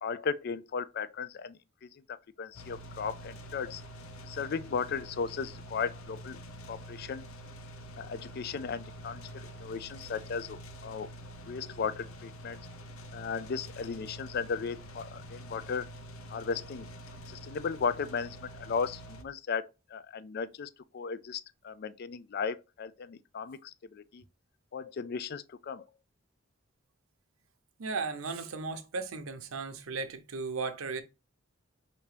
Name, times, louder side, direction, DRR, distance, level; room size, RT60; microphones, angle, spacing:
voice 1, 0.0-3.8 4.2-6.4 6.7-7.2 8.0-11.1 11.5-12.6 13.1-15.9 16.3-16.9 17.3-24.2 24.7-25.8, left 5 dB, 50° left, 0.4 m, -36 dB
sound 1, 2.5-19.2, right 1 dB, 90° left, 0.7 m, -46 dB
voice 2, 27.8-31.0, right 4 dB, 85° right, 0.7 m, -36 dB
5.9 x 2.7 x 3.2 m
head